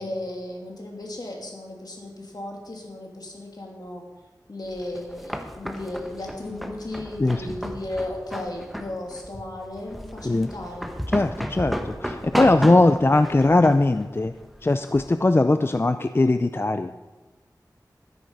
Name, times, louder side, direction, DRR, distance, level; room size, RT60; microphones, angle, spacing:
voice 1, 0.0-4.0 4.5-10.9, left 1 dB, 65° left, 0 dB, 2.6 m, -35 dB
sound 1, 4.7-15.1, equal, ahead, 1.1 m, -33 dB
voice 2, 11.1-14.3 14.6-16.9, left 2 dB, 35° left, 9 dB, 0.4 m, -20 dB
13.5 x 10.5 x 5.3 m, 1.2 s
wide cardioid pair, 65°, 7 cm